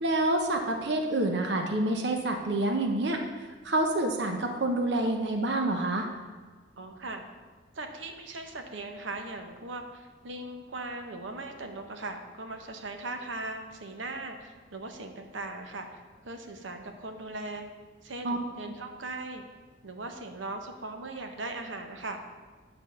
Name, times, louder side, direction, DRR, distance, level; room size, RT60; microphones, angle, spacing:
voice 1, 0.0-3.2 3.6-6.1 18.2-18.4, right 1 dB, 65° right, 3 dB, 0.9 m, -27 dB
voice 2, 6.8-7.2 7.7-17.6 18.0-19.4 19.8-22.2, right 2 dB, 90° right, 5 dB, 1.0 m, -39 dB
9.7 x 4.0 x 6.8 m, 1.4 s
head